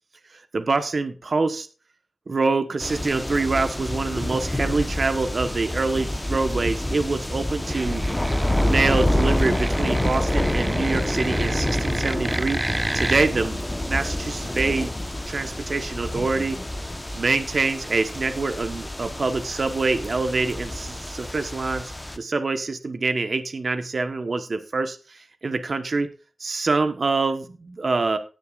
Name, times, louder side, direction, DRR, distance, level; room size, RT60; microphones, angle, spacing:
voice 1, 0.3-1.7 2.3-8.0 8.6-14.9 15.3-16.6 17.1-26.1 26.4-28.2, right 3 dB, 60° right, 8 dB, 1.2 m, -25 dB
sound 1, 2.8-22.2, left 1 dB, 15° left, 1.1 m, -27 dB
sound 2, 7.6-13.3, right 1 dB, 20° right, 0.4 m, -30 dB
18.5 x 6.6 x 2.5 m, 0.34 s
wide cardioid pair, 65°, 0 cm